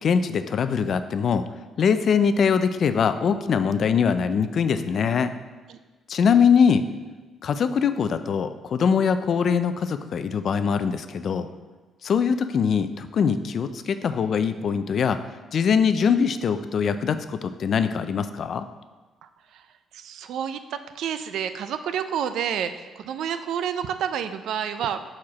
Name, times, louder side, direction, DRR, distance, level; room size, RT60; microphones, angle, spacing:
voice 1, 0.0-1.5 1.8-5.3 6.1-6.8 7.4-11.5 12.0-15.2 15.5-18.7, left 6 dB, 60° left, 11 dB, 0.4 m, -22 dB
voice 2, 19.9-25.0, right 8 dB, 80° right, 10 dB, 0.4 m, -29 dB
4.7 x 4.3 x 5.9 m, 1.3 s
cardioid pair, 90°, 0 cm